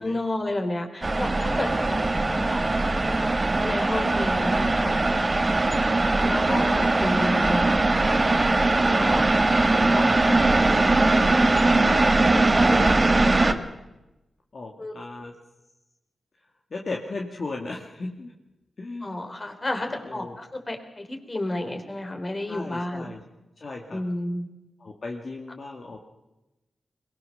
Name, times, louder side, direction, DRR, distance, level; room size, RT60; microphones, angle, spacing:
voice 1, 0.0-2.7 3.2-5.0 6.1-7.8 14.8-15.0 19.0-23.1 23.9-24.5, left 1 dB, 35° left, 5 dB, 3.6 m, -31 dB
sound 1, 1.0-13.5, right 2 dB, 35° right, 1.6 m, -21 dB
voice 2, 1.4-2.1 5.5-5.8 6.4-6.7 8.9-9.3 9.7-13.6 14.5-15.3 16.7-18.3 18.8-19.4 19.8-20.4 22.5-23.2 23.6-24.0 24.8-26.0, left 3 dB, 60° left, 1 dB, 2.0 m, -36 dB
22.0 x 18.5 x 6.5 m, 1.0 s
supercardioid pair, 40°, 0 cm